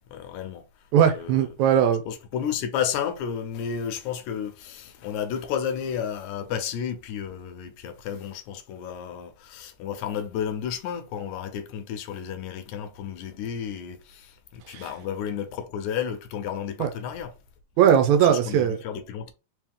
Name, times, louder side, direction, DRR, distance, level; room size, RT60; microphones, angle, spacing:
voice 1, 0.1-0.7 1.1-1.5 2.1-17.4 18.3-19.3, left 8 dB, 80° left, 2.0 m, -32 dB
voice 2, 0.9-2.0 14.7-14.8 16.8-16.9 17.8-18.8, right 9 dB, 80° right, 2.0 m, -19 dB
4.8 x 3.1 x 3.5 m
omnidirectional pair, 3.5 m